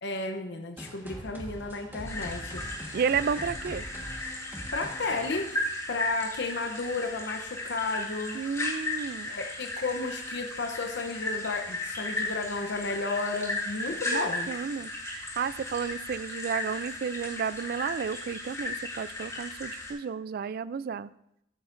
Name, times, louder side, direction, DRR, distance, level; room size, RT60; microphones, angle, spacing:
voice 1, 0.0-2.6 4.7-8.4 9.3-14.5, left 3 dB, 60° left, 4 dB, 0.8 m, -33 dB
sound 1, 0.8-6.2, equal, 10° right, 1.4 m, -43 dB
sound 2, 2.0-19.9, left 2 dB, 15° left, 3.3 m, -36 dB
voice 2, 2.9-3.8 8.3-9.3 14.1-21.1, right 6 dB, 50° right, 18 dB, 0.3 m, -32 dB
14.5 x 7.9 x 2.6 m, 0.80 s
head